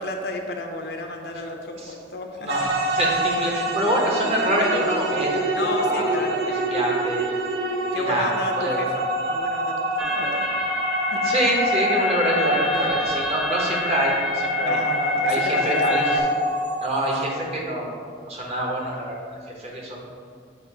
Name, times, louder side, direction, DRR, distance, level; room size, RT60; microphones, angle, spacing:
voice 1, 0.0-2.6 5.5-6.4 7.9-10.5 11.1-11.3 12.7-13.0 14.6-16.2, left 1 dB, 65° left, 3 dB, 0.6 m, -32 dB
voice 2, 2.4-5.4 5.8-6.2 6.7-7.3 7.9-8.8 11.2-14.8 15.2-16.2 16.8-17.9 18.3-20.0, equal, 35° right, -2 dB, 1.1 m, -25 dB
sound 1, 2.5-17.2, right 1 dB, 75° right, 0.7 m, -26 dB
sound 2, 10.0-16.2, left 3 dB, 5° right, 0.3 m, -28 dB
7.2 x 3.1 x 4.7 m, 2.1 s
head